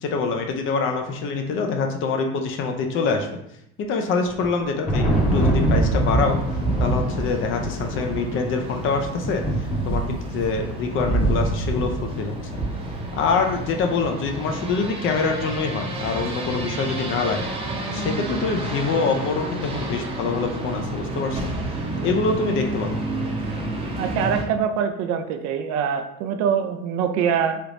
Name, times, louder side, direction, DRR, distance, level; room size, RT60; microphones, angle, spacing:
voice 1, 0.0-3.3 3.8-5.0 5.3-6.4 6.8-9.4 9.9-12.4 13.1-17.5 17.9-21.4 22.0-23.0, left 4 dB, 40° left, 4 dB, 0.5 m, -25 dB
Thunder, 4.3-13.7, right 2 dB, 25° left, 0.9 m, -24 dB
sound 1, 5.1-24.4, right 1 dB, 15° right, 0.7 m, -31 dB
voice 2, 24.0-27.6, right 7 dB, 55° right, 7 dB, 0.4 m, -24 dB
3.4 x 2.9 x 2.5 m, 0.77 s
supercardioid pair, 120°, 32 cm